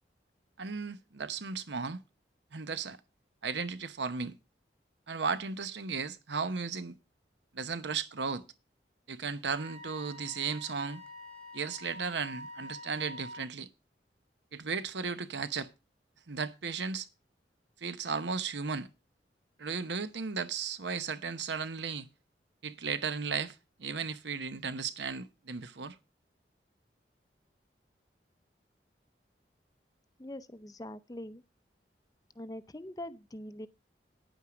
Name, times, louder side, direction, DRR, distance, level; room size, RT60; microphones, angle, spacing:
voice 1, 0.6-2.0 2.5-3.0 3.4-4.4 5.1-7.0 7.5-8.4 9.1-11.0 11.5-13.7 14.5-15.7 16.3-17.1 17.8-18.9 19.6-22.1 22.6-26.0, right 5 dB, 80° right, 0.9 m, -35 dB
Wind instrument woodwind instrument, 9.4-13.4, left 1 dB, 40° right, 2.7 m, -47 dB
voice 2, 30.2-31.4 32.4-33.7, left 1 dB, 20° left, 0.5 m, -43 dB
9.7 x 9.0 x 5.0 m
head